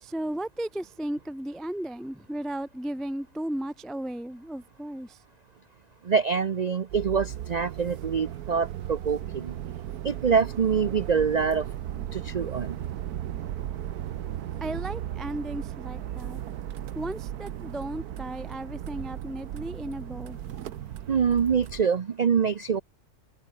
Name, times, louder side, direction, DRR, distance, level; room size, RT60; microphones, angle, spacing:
voice 1, 0.0-5.2 14.6-16.4 16.9-20.5, right 1 dB, ahead, 0.4 m, -35 dB
voice 2, 6.1-9.5 10.0-11.7 12.1-12.8 21.1-22.8, right 6 dB, 65° right, 0.4 m, -25 dB
sound 1, 6.9-21.8, right 11 dB, 85° right, 1.4 m, -36 dB
omnidirectional pair, 1.6 m